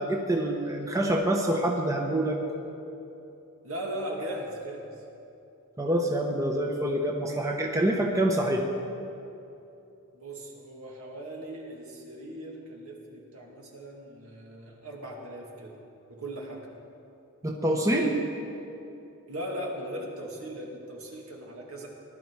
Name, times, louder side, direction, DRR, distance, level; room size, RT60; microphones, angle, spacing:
voice 1, 0.0-2.4 5.8-8.6 17.4-18.2, right 1 dB, 15° right, 1 dB, 1.0 m, -26 dB
voice 2, 3.6-4.9 10.1-15.7 16.1-16.7 19.3-21.9, right 1 dB, 70° right, -1 dB, 2.3 m, -38 dB
19.5 x 12.0 x 4.8 m, 2.8 s
head